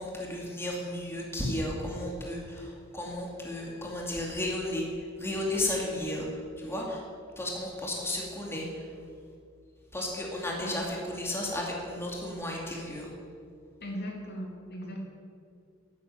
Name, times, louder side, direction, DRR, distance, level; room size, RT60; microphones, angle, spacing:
voice 1, 0.0-4.9 5.2-6.3 6.6-7.0 7.4-8.8 9.9-13.1, left 1 dB, 10° left, -2 dB, 2.4 m, -33 dB
voice 2, 13.8-15.1, equal, 50° left, 0 dB, 2.4 m, -38 dB
12.0 x 9.6 x 8.9 m, 2.3 s
head